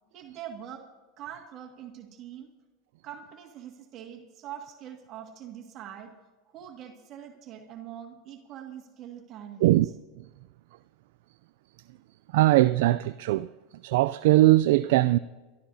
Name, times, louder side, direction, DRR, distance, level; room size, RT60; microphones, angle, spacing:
voice 1, 0.1-0.8 1.2-2.5 3.0-6.1 6.5-9.8, right 10 dB, 45° right, 1.9 m, -43 dB
voice 2, 12.3-15.2, right 17 dB, 70° right, 0.3 m, -21 dB
24.5 x 13.0 x 2.7 m
hypercardioid pair, 100°, 0 cm